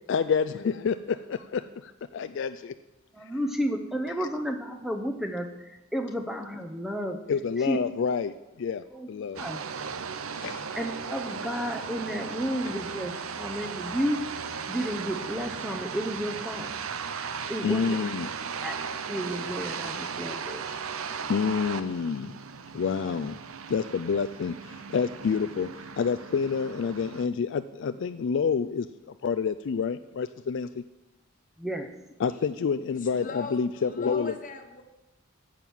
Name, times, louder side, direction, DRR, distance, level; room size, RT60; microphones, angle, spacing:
voice 1, 0.1-2.7 7.3-9.4 10.4-10.7 17.6-18.3 21.3-22.4 22.7-23.4 23.7-30.8 32.2-34.3, left 6 dB, 60° left, 11 dB, 0.3 m, -28 dB
voice 2, 3.1-7.2 7.6-7.8 8.9-9.1 9.3-9.6 10.8-14.2 14.7-16.7 17.5-18.0 18.6-18.8 19.1-20.6 31.6-32.0, equal, ahead, 5 dB, 0.7 m, -32 dB
sound 1, 9.4-27.3, right 6 dB, 85° right, 0.7 m, -37 dB
voice 3, 33.0-34.8, left 3 dB, 40° left, 5 dB, 1.3 m, -39 dB
10.5 x 7.4 x 7.1 m, 1.0 s
head